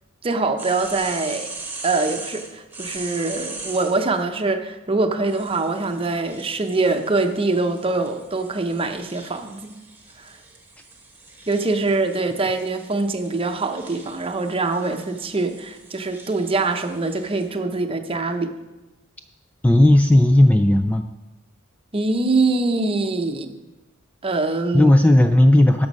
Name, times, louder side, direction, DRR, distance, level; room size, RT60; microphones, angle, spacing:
voice 1, 0.2-1.5 1.8-9.8 10.2-10.3 11.5-18.5 21.9-23.5 24.2-24.9, right 3 dB, 25° right, 6 dB, 0.8 m, -23 dB
sound 1, 0.6-4.0 5.3-17.5, right 3 dB, 10° right, 1.2 m, -40 dB
voice 2, 19.6-21.1 24.7-25.9, left 1 dB, 5° left, 7 dB, 0.3 m, -14 dB
12.5 x 6.2 x 5.4 m, 1.1 s
head